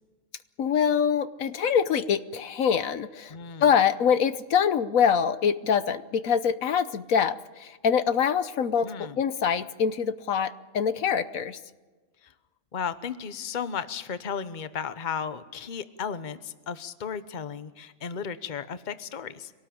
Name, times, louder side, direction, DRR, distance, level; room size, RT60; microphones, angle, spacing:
voice 1, 0.6-3.3 3.6-11.6, left 7 dB, 75° left, 13 dB, 1.3 m, -24 dB
voice 2, 3.3-3.7 8.8-9.2 12.2-12.3 12.7-19.5, left 7 dB, 35° left, 12 dB, 1.1 m, -34 dB
25.0 x 18.5 x 8.7 m, 1.3 s
omnidirectional pair, 1.4 m